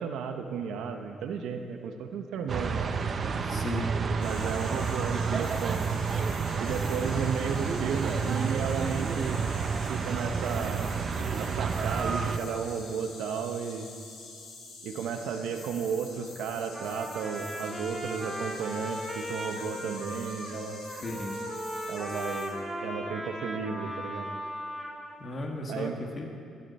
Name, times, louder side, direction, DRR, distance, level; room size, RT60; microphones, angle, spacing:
voice 1, 0.0-3.0 4.2-5.8 6.6-9.4 9.9-10.8 11.4-13.9 14.8-20.8 21.9-24.3 25.7-25.9, right 6 dB, 85° right, 6 dB, 1.0 m, -33 dB
sound 1, 2.5-12.4, right 5 dB, 45° right, 0.7 m, -30 dB
voice 2, 3.5-3.9 21.0-21.3 25.2-26.3, left 1 dB, 40° left, 2 dB, 1.8 m, -35 dB
sound 2, 4.2-22.4, left 3 dB, 80° left, 3.5 m, -47 dB
Trumpet, 16.7-25.1, equal, 10° right, 1.9 m, -37 dB
15.0 x 11.5 x 4.3 m, 2.4 s
cardioid pair, 90°, 0 cm